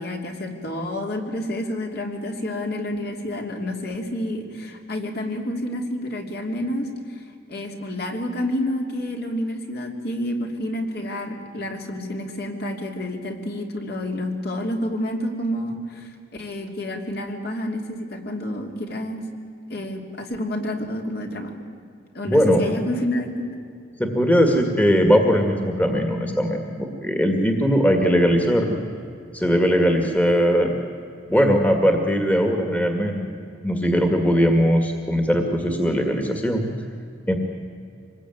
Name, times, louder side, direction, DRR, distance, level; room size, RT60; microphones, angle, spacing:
voice 1, 0.0-6.9 7.1-19.2 19.7-21.5 22.1-23.5, left 1 dB, 50° left, 2 dB, 3.0 m, -29 dB
voice 2, 22.3-22.6 24.0-28.8 29.3-30.7 31.3-33.2 33.6-36.7 37.3-37.4, equal, 10° left, 4 dB, 1.9 m, -19 dB
25.5 x 20.5 x 9.3 m, 2.4 s
head